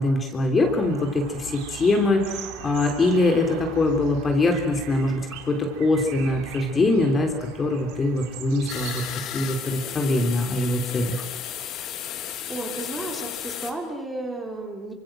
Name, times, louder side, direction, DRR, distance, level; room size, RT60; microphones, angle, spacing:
voice 1, 0.0-11.2, left 2 dB, 20° left, 3 dB, 3.4 m, -23 dB
sound 1, 0.6-9.2, right 10 dB, 70° right, 3.6 m, -40 dB
sound 2, 8.7-13.7, left 10 dB, 45° left, 3.0 m, -34 dB
voice 2, 12.5-14.9, right 2 dB, 10° right, 2 dB, 4.0 m, -33 dB
28.0 x 25.5 x 7.7 m, 1.1 s
cardioid pair, 150°, 0 cm